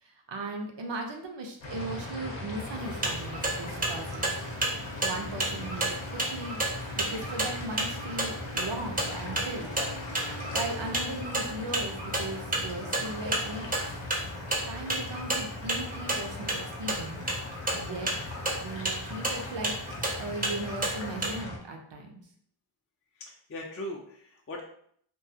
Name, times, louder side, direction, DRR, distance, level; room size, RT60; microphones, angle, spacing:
voice 1, 0.0-4.3 5.0-6.6 6.9-9.8 10.5-14.0 14.7-17.2 17.7-18.1 18.6-22.2, right 2 dB, 60° right, 2 dB, 0.6 m, -38 dB
sound 1, 1.6-21.6, left 2 dB, 65° left, 0.7 m, -39 dB
sound 2, 1.6-16.5, right 2 dB, 75° right, 1.0 m, -47 dB
sound 3, 2.8-21.4, right 2 dB, 20° right, 0.5 m, -32 dB
voice 2, 23.2-24.6, left 1 dB, 30° left, -2 dB, 0.4 m, -39 dB
2.3 x 2.3 x 2.7 m, 0.64 s
wide cardioid pair, 70°, 50 cm